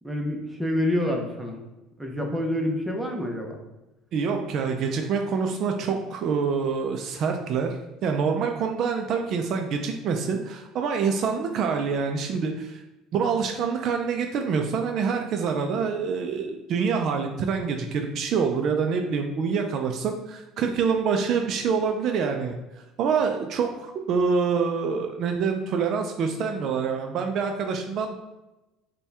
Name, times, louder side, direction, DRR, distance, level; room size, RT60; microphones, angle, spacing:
voice 1, 0.0-1.6 2.0-3.6, left 1 dB, 5° right, 1 dB, 0.7 m, -27 dB
voice 2, 4.1-12.8 13.1-28.2, right 5 dB, 55° right, 4 dB, 0.4 m, -26 dB
4.2 x 2.2 x 3.3 m, 1.0 s
supercardioid pair, 105°, 0 cm